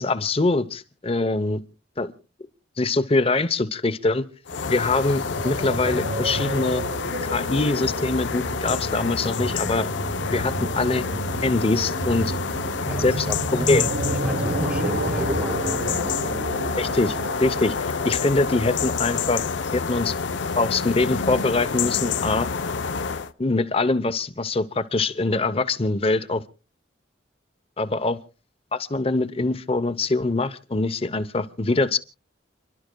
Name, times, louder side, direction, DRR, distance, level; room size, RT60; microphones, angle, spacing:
voice 1, 0.0-1.6 2.0-2.1 2.8-4.2 4.7-6.8 7.3-9.9 10.3-11.0 11.4-12.3 13.0-13.3 13.7-13.8 16.8-17.7 18.0-19.4 19.7-20.1 20.5-22.5 23.4-26.4 27.8-28.2 28.7-32.0, left 3 dB, 30° left, 0.7 m, -23 dB
sound 1, 4.5-23.3, left 5 dB, 70° left, 0.7 m, -28 dB
sound 2, 4.5-18.7, right 2 dB, 55° right, 0.8 m, -31 dB
voice 2, 12.8-15.9, equal, 5° right, 0.7 m, -32 dB
30.0 x 11.5 x 2.2 m
head